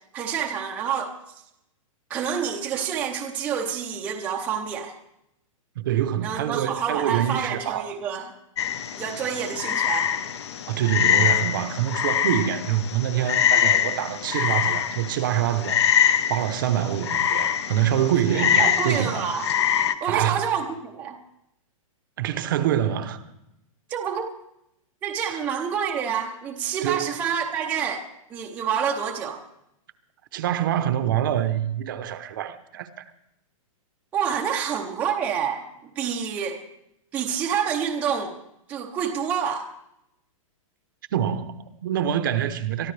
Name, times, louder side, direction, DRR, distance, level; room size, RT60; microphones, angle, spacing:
voice 1, 0.1-1.1 2.1-4.9 6.2-8.3 9.0-10.2 18.3-19.5 20.0-21.2 23.9-24.2 25.0-29.4 34.1-35.6 36.0-36.6 37.1-38.4 38.7-39.7, right 7 dB, 10° right, 0.7 m, -28 dB
voice 2, 5.8-7.9 10.7-15.8 16.3-19.2 20.1-20.5 22.2-23.2 25.2-25.4 26.8-27.2 30.3-33.0 41.1-42.9, right 10 dB, 35° right, 0.9 m, -25 dB
Frog, 8.6-19.9, left 9 dB, 50° left, 0.9 m, -24 dB
23.5 x 13.5 x 3.4 m
hypercardioid pair, 175°, 18 cm